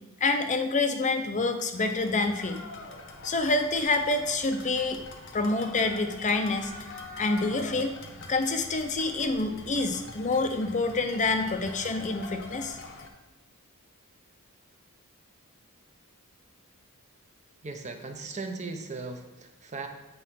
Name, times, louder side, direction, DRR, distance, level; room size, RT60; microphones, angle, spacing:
voice 1, 0.2-2.6 3.2-5.0 5.3-6.7 7.2-8.0 8.3-12.8, left 3 dB, 35° left, 6 dB, 0.6 m, -27 dB
sound 1, 1.7-13.1, left 3 dB, 55° left, 1.0 m, -44 dB
voice 2, 17.6-19.9, right 3 dB, 30° right, 5 dB, 0.8 m, -38 dB
8.4 x 4.6 x 5.7 m, 1.1 s
head